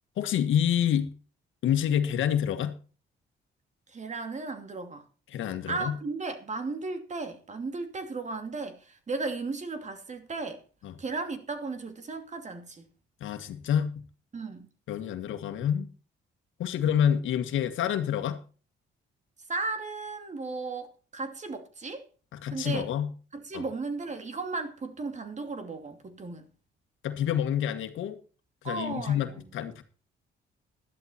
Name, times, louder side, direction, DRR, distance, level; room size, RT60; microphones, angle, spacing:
voice 1, 0.2-1.1 1.6-2.8 5.3-6.0 10.8-10.9 13.2-14.0 14.9-15.9 16.6-18.4 22.3-23.1 23.5-23.6 27.0-28.2 28.6-29.8, left 9 dB, 80° left, 1.7 m, -28 dB
voice 2, 3.9-5.0 5.7-10.6 11.0-12.9 14.3-14.7 19.5-22.0 22.5-22.9 23.3-26.5 28.6-29.4, right 3 dB, 35° right, 2.7 m, -35 dB
13.0 x 11.5 x 4.3 m
cardioid pair, 90°, 20 cm